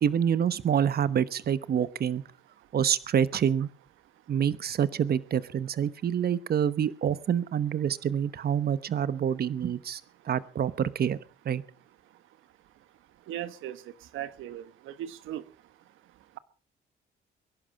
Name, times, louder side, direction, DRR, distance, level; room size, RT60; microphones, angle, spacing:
voice 1, 0.0-2.2 2.7-3.7 4.3-10.0 10.3-11.2 11.4-11.6, right 8 dB, 50° right, 1.0 m, -27 dB
voice 2, 13.3-13.8 14.1-15.4, right 12 dB, 85° right, 1.3 m, -37 dB
23.0 x 11.5 x 5.3 m
cardioid pair, 90°, 20 cm